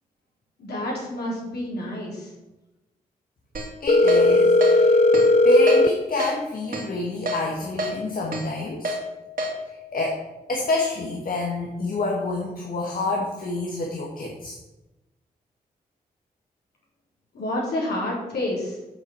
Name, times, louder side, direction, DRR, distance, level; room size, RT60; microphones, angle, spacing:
voice 1, 0.6-2.3 17.3-18.8, left 1 dB, 75° left, -3 dB, 4.1 m, -29 dB
Keyboard (musical), 3.5-3.7 4.1-4.2 4.6-4.7 5.1-5.3 5.7-5.8 6.2-6.3 6.7-6.9 7.3-7.4 7.8-7.9 8.3-8.4 8.8-9.0 9.4-9.5, right 1 dB, 55° right, 2.4 m, -27 dB
voice 2, 3.8-5.0 5.4-8.9 9.6-10.2 10.5-14.6, left 2 dB, 60° left, -1 dB, 1.9 m, -27 dB
Telephone, 3.9-5.9, left 2 dB, 40° left, 0.9 m, -16 dB
8.2 x 6.8 x 7.3 m, 1.0 s
supercardioid pair, 50°, 17 cm